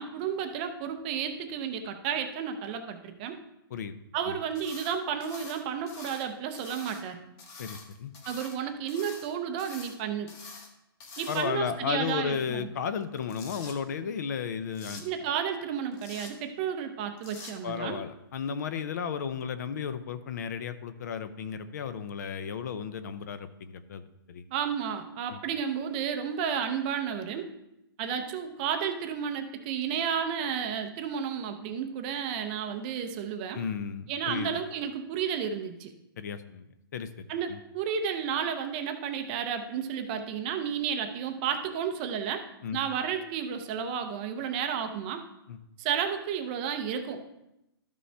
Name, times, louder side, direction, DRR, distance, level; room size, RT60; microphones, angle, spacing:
voice 1, 0.0-3.4 4.1-7.2 8.3-10.3 11.2-12.7 15.0-18.0 24.5-27.5 28.0-33.6 34.1-35.9 37.3-42.4 42.7-45.2 45.8-47.2, right 7 dB, 25° right, 7 dB, 0.5 m, -32 dB
sound 1, 4.5-4.9 5.2-6.3 6.5-7.0 7.4-8.6 8.9-9.3 9.6-10.0 10.3-10.7 11.0-11.7 13.0-13.7 14.7-15.0 15.9-16.3 17.2-17.5, left 4 dB, 25° left, 0.9 m, -46 dB
voice 2, 7.6-8.1 11.3-15.0 17.6-24.4 25.3-25.4 33.5-34.5 36.2-36.7 36.9-37.6 42.6-42.8 45.5-45.6, left 7 dB, 45° left, 12 dB, 0.5 m, -34 dB
12.5 x 5.2 x 3.3 m, 0.88 s
hypercardioid pair, 165°, 13 cm